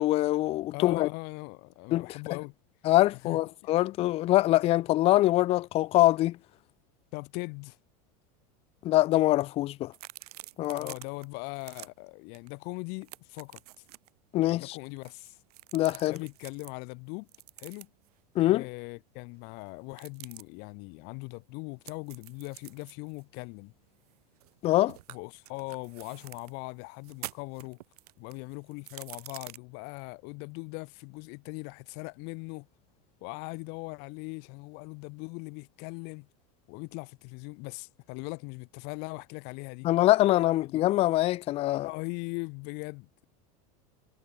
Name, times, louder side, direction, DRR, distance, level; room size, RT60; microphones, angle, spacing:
voice 1, 0.0-1.1 1.9-2.1 2.8-6.4 8.8-9.9 10.6-10.9 14.3-14.8 15.7-16.2 18.4-18.7 24.6-25.0 39.8-41.9, left 16 dB, 30° left, 0.4 m, -24 dB
voice 2, 0.7-2.5 3.2-3.7 7.1-7.8 10.8-13.6 14.4-15.4 16.1-17.3 17.6-17.9 18.5-23.7 25.1-27.8 28.2-32.7 33.2-36.3 36.7-39.9 40.6-40.8 41.8-43.3, left 32 dB, 60° left, 3.2 m, -40 dB
sound 1, 9.9-11.3 11.6-11.9 12.3-12.5 12.8-14.1 14.9-16.7 17.3-18.1 19.9-20.4 21.9-24.6 24.9-26.5 27.0-29.6, right 17 dB, 85° right, 4.5 m, -47 dB
supercardioid pair, 130°, 19 cm